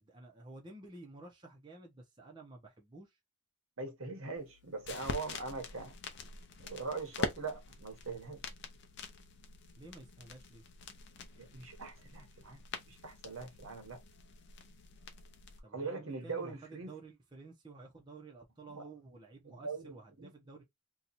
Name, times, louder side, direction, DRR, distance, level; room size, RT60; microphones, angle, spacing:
voice 1, 0.0-3.2 9.8-10.6 15.6-20.6, right 3 dB, 20° right, 0.6 m, -52 dB
voice 2, 3.8-5.9 6.6-8.4 11.4-12.6 12.9-14.0 15.7-16.9 18.7-18.8 19.4-20.3, right 4 dB, 70° right, 1.0 m, -42 dB
sound 1, 4.4-15.6, left 3 dB, 50° left, 0.6 m, -45 dB
2.8 x 2.3 x 3.9 m
head